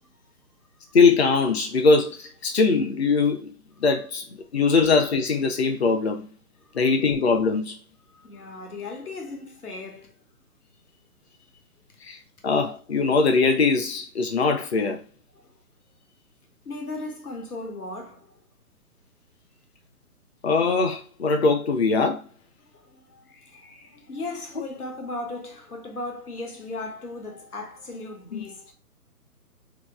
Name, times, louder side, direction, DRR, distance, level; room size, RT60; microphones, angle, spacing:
voice 1, 0.9-4.2 4.5-6.2 6.7-7.8 12.0-12.2 12.4-15.0 20.4-22.2 28.3-28.4, left 4 dB, 45° left, 0.6 m, -21 dB
voice 2, 8.1-10.1 15.4-15.5 16.6-18.4 22.6-28.7, left 2 dB, 70° left, 1.1 m, -37 dB
2.9 x 2.0 x 3.5 m
figure-of-eight pair, 140°, 46 cm